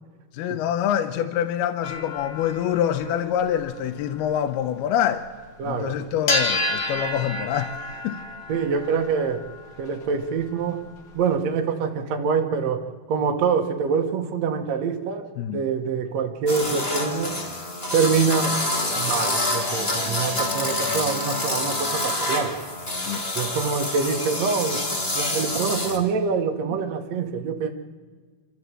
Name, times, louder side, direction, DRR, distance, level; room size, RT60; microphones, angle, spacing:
voice 1, 0.3-5.3 5.6-7.8 8.0-8.2 15.4-15.6 23.1-23.3, left 10 dB, 85° left, 2.7 m, -25 dB
sound 1, 1.8-5.3 5.6-5.7 6.2-11.3, left 1 dB, 50° left, 1.4 m, -31 dB
voice 2, 5.6-6.0 8.5-9.4 9.8-10.8 11.1-12.8 13.1-17.4 17.9-18.6 18.9-22.5 23.4-24.9 25.2-27.7, right 5 dB, 65° right, 1.8 m, -25 dB
sound 2, 16.5-26.0, left 2 dB, 20° left, 2.1 m, -27 dB
27.0 x 13.0 x 7.6 m
omnidirectional pair, 4.5 m